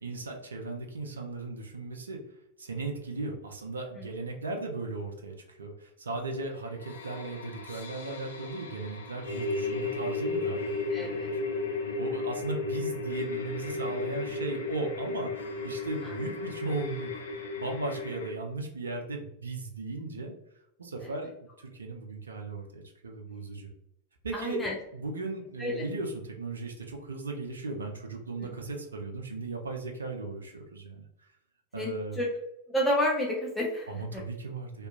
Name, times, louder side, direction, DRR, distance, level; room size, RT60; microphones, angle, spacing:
voice 1, 0.0-2.2 2.6-11.4 12.0-17.2 17.6-20.3 20.8-23.7 24.2-24.6 24.9-31.0 31.7-32.2 33.9-34.9, right 3 dB, 70° right, 2 dB, 0.4 m, -37 dB
sound 1, 6.5-18.3, left 3 dB, 65° left, 0.4 m, -34 dB
voice 2, 10.9-11.3 16.0-16.1 24.3-24.8 25.6-25.8 28.4-28.5 31.8-32.3 32.7-34.2, left 1 dB, 10° left, -3 dB, 0.5 m, -30 dB
2.8 x 2.2 x 2.3 m, 0.83 s
figure-of-eight pair, 90°, 0 cm